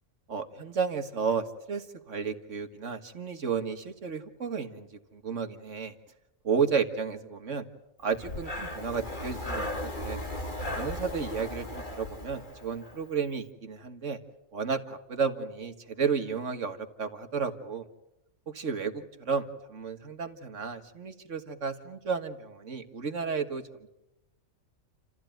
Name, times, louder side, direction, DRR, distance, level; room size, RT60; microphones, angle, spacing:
voice 1, 0.3-5.9 6.4-7.7 8.0-10.2 10.7-14.2 14.5-17.8 18.5-23.6, right 6 dB, 65° right, 7 dB, 2.0 m, -32 dB
Breathing, 8.1-13.0, left 1 dB, 35° left, 2.9 m, -36 dB
29.5 x 15.0 x 9.2 m, 0.90 s
omnidirectional pair, 1.4 m